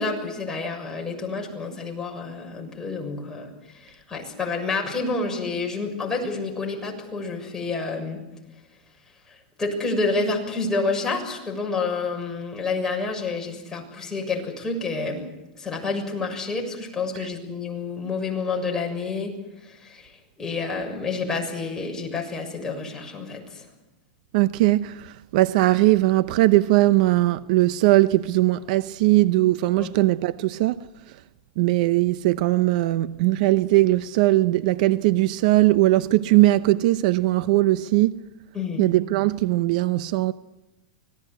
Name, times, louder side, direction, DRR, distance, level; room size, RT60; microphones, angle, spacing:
voice 1, 0.0-8.2 9.3-15.2 15.6-19.3 19.6-20.1 20.4-23.7 29.8-29.9 38.5-38.8, left 3 dB, 10° left, 6.8 m, -29 dB
voice 2, 24.3-30.9 31.6-38.2 38.8-40.3, right 17 dB, 55° right, 0.8 m, -20 dB
25.5 x 19.0 x 8.4 m
hypercardioid pair, 135°, 5 cm